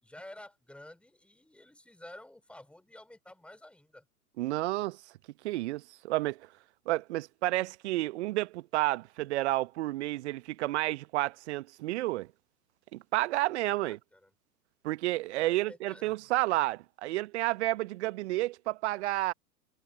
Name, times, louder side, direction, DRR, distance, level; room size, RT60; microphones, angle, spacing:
voice 1, 0.0-4.0 13.8-14.3 15.3-16.2, left 1 dB, ahead, 3.3 m, -51 dB
voice 2, 4.4-5.0 5.4-6.4 6.9-12.3 12.9-14.0 14.8-19.3, right 17 dB, 45° right, 1.2 m, -31 dB
figure-of-eight pair, 105°, 49 cm